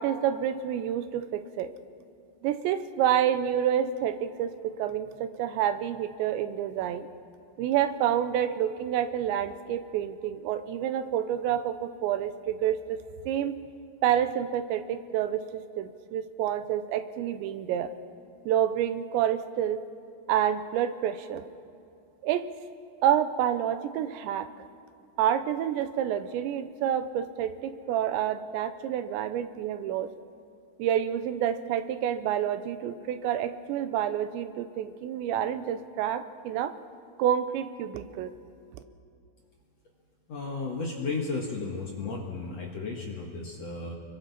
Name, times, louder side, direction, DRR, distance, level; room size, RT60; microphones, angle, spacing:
voice 1, 0.0-1.7 2.4-7.1 7.6-13.0 13.3-13.6 14.0-17.9 18.5-19.8 20.3-21.4 22.2-22.4 23.0-24.5 25.2-30.1 30.8-36.7 37.2-38.3, right 10 dB, 90° right, 11 dB, 3.1 m, -28 dB
voice 2, 40.3-43.9, left 3 dB, 55° left, -1 dB, 2.0 m, -34 dB
30.0 x 22.0 x 4.2 m, 2.5 s
omnidirectional pair, 5.0 m